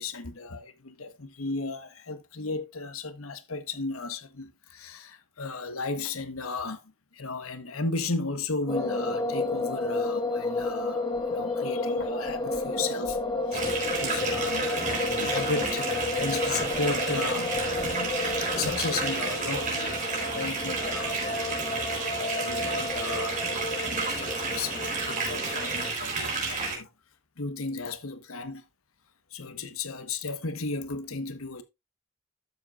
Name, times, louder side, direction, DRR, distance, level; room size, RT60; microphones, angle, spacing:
voice 1, 0.0-6.8 7.1-13.2 13.5-26.9 27.4-28.6 29.3-31.6, left 3 dB, 90° left, 1.3 m, -35 dB
sound 1, 8.7-25.9, left 2 dB, 25° left, 1.7 m, -31 dB
sound 2, 13.5-26.8, right 4 dB, 40° right, 4.0 m, -31 dB
12.0 x 7.7 x 2.5 m
head